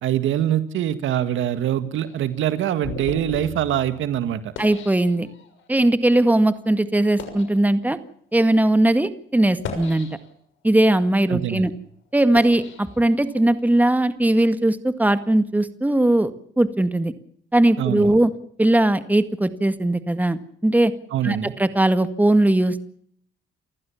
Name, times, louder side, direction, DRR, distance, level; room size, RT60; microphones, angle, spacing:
voice 1, 0.0-4.5 11.3-11.7 17.8-18.2 21.1-21.5, right 11 dB, 80° right, 12 dB, 1.9 m, -24 dB
sound 1, 1.9-5.7 6.4-6.5 7.0-7.6 8.3-8.5 9.4-10.5 11.0-13.6, left 6 dB, 75° left, 6.4 m, -38 dB
voice 2, 4.6-5.3 5.7-8.0 8.3-10.1 10.6-11.7 12.1-17.1 17.5-18.3 18.6-20.9 21.2-22.9, right 1 dB, 10° right, 11 dB, 1.8 m, -19 dB
29.0 x 15.0 x 7.2 m, 0.63 s
cardioid pair, 90°, 20 cm